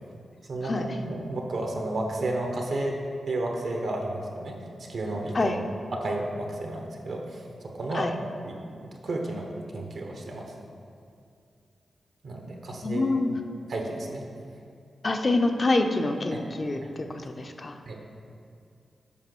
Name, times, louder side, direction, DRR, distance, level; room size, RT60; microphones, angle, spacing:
voice 1, 0.5-3.0 3.3-4.6 4.9-5.5 5.9-7.4 7.7-8.1 8.4-8.6 9.0-10.5 12.2-13.0 13.7-14.2 16.3-16.4 16.8-17.2 17.9-18.0, right 2 dB, 75° right, 1 dB, 1.2 m, -32 dB
voice 2, 12.8-13.4 15.0-17.7, left 2 dB, 50° left, 5 dB, 0.8 m, -26 dB
7.6 x 5.3 x 6.1 m, 2.4 s
cardioid pair, 45°, 0 cm